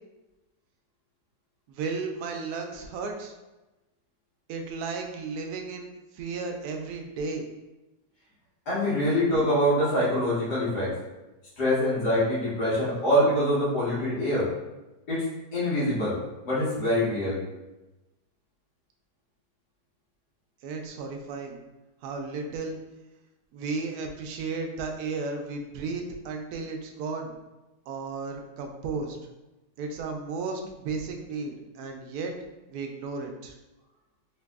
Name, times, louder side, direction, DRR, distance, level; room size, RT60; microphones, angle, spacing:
voice 1, 1.7-3.3 4.5-5.9 6.1-7.5 20.6-21.6 22.0-22.8 23.5-27.3 27.9-29.2 29.8-32.3 32.7-33.5, right 4 dB, 75° right, 3 dB, 1.0 m, -34 dB
voice 2, 8.7-10.9 11.6-14.5 15.1-15.2 15.5-16.1 16.4-17.4, equal, 75° left, -9 dB, 2.0 m, -24 dB
3.9 x 2.8 x 2.3 m, 1.0 s
omnidirectional pair, 1.8 m